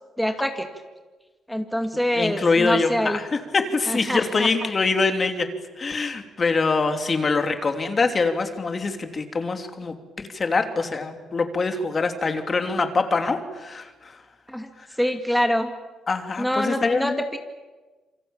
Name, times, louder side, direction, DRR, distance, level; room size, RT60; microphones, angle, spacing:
voice 1, 0.2-0.7 1.5-3.2 3.9-4.7 14.5-14.7 15.0-15.7 16.4-17.4, equal, ahead, 5 dB, 2.5 m, -25 dB
voice 2, 2.2-3.3 3.5-5.5 5.8-14.2 14.8-14.9 16.1-17.2, left 4 dB, 35° left, 6 dB, 3.0 m, -24 dB
27.5 x 24.5 x 8.8 m, 1.3 s
cardioid pair, 90°, 0 cm